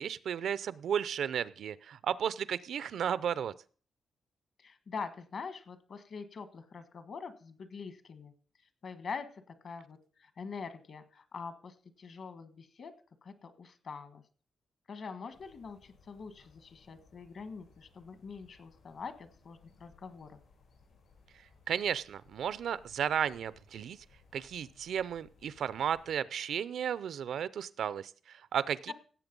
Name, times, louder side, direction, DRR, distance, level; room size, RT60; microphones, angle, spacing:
voice 1, 0.0-3.5 21.7-24.0 24.3-28.9, right 8 dB, 70° right, 17 dB, 0.5 m, -34 dB
voice 2, 4.6-8.3 8.8-12.9 13.2-14.2 14.9-20.4 28.9-29.0, left 5 dB, 50° left, 11 dB, 1.4 m, -44 dB
sound 1, 15.3-26.2, left 4 dB, 85° left, 7.0 m, -64 dB
17.0 x 7.7 x 5.3 m, 0.41 s
wide cardioid pair, 165°, 0 cm